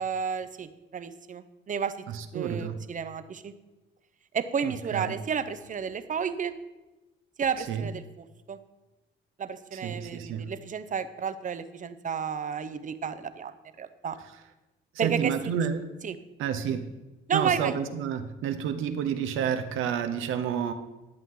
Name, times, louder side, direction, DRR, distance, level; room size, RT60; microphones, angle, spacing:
voice 1, 0.0-2.0 2.3-3.5 4.3-6.5 7.4-8.6 9.4-13.5 13.8-14.2 15.0-15.3 16.0-16.2 17.3-17.8, right 7 dB, 40° right, 12 dB, 0.7 m, -31 dB
voice 2, 2.1-2.8 4.6-5.2 7.7-7.9 9.7-10.5 14.9-15.9 16.4-16.9 17.3-20.7, right 8 dB, 85° right, 9 dB, 0.8 m, -30 dB
11.0 x 7.6 x 3.8 m, 1.1 s
cardioid pair, 90°, 20 cm